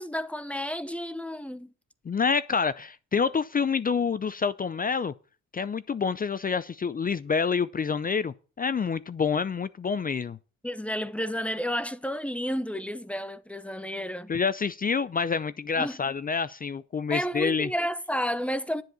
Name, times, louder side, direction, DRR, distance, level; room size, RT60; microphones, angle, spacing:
voice 1, 0.0-1.7 10.6-14.3 15.8-16.0 17.1-18.8, equal, 5° left, 0.9 m, -31 dB
voice 2, 2.1-5.1 5.5-10.4 14.3-17.7, left 5 dB, 30° left, 0.5 m, -27 dB
10.5 x 7.7 x 6.9 m
cardioid pair, 90°, 30 cm